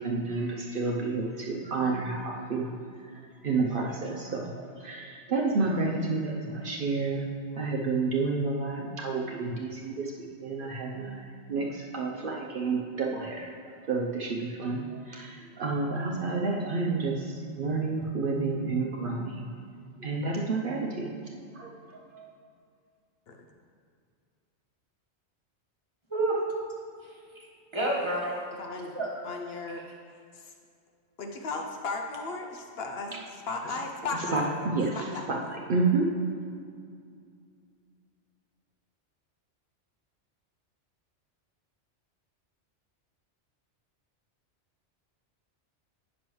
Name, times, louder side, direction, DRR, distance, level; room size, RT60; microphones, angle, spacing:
voice 1, 0.0-2.8 3.0-3.1 3.4-7.3 7.5-13.5 13.8-19.5 20.0-21.1 21.5-22.3 33.6-33.8 34.1-36.1, right 3 dB, 55° right, -1 dB, 0.7 m, -30 dB
voice 2, 26.1-26.4 27.0-27.5 27.7-28.4 28.9-29.4 29.7-29.8, right 2 dB, 25° right, -4 dB, 1.2 m, -30 dB
voice 3, 28.6-28.9 29.2-29.8 31.2-33.1 33.5-34.6 35.1-35.5, left 3 dB, 65° left, 3 dB, 0.8 m, -35 dB
9.1 x 6.2 x 3.1 m, 2.3 s
omnidirectional pair, 1.2 m